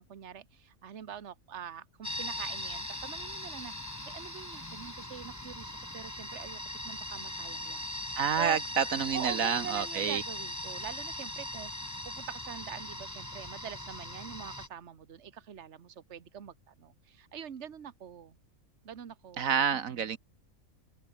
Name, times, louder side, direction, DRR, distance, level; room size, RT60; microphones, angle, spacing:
voice 1, 0.0-8.6 9.1-18.3 18.8-20.0, right 8 dB, 55° right, 1.5 m, -45 dB
sound 1, 2.0-14.7, left 1 dB, 10° left, 3.1 m, -40 dB
voice 2, 8.2-10.2 19.4-20.2, right 7 dB, 75° right, 1.5 m, -28 dB
open air
omnidirectional pair, 1.5 m